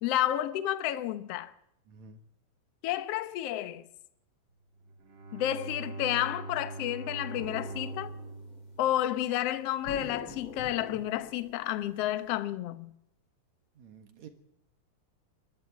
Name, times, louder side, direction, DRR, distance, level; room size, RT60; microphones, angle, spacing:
voice 1, 0.0-1.5 2.8-3.9 5.3-8.1 8.8-12.9, left 13 dB, 80° left, 1.4 m, -31 dB
voice 2, 1.9-2.2 13.8-14.3, right 5 dB, 60° right, 2.6 m, -50 dB
Bowed string instrument, 4.8-10.0, right 2 dB, 35° right, 2.5 m, -43 dB
sound 1, 7.4-8.8 9.8-12.3, left 2 dB, 35° left, 4.0 m, -46 dB
21.0 x 13.0 x 9.5 m
omnidirectional pair, 4.1 m